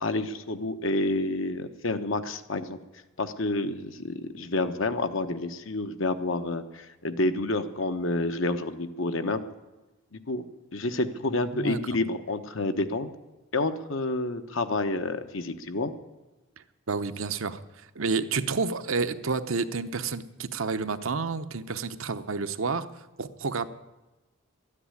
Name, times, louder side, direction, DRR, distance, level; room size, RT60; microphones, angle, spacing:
voice 1, 0.0-2.8 3.2-9.4 10.1-10.4 10.7-13.1 13.5-15.9, left 2 dB, 65° left, 9 dB, 1.1 m, -29 dB
voice 2, 16.9-17.6 18.0-22.9 23.2-23.7, right 4 dB, 70° right, 10 dB, 0.8 m, -29 dB
13.0 x 9.9 x 9.8 m, 1.1 s
head